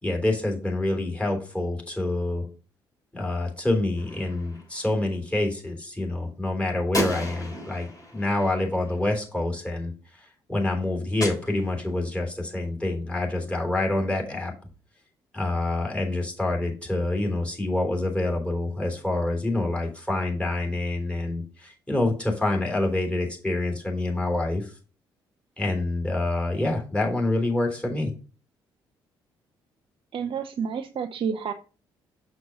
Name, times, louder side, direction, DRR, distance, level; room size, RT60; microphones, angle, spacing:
voice 1, 0.0-2.4 3.1-9.9 10.2-14.5 15.3-24.7 25.6-28.1, left 2 dB, 10° left, 1 dB, 3.4 m, -27 dB
Gunshot gunfire, 4.0-5.0 6.9-9.3 11.2-12.2, left 1 dB, 30° left, 3.6 m, -34 dB
voice 2, 30.1-31.5, right 6 dB, 50° right, 6 dB, 0.7 m, -29 dB
6.7 x 6.1 x 3.8 m, 0.36 s
hypercardioid pair, 45°, 12 cm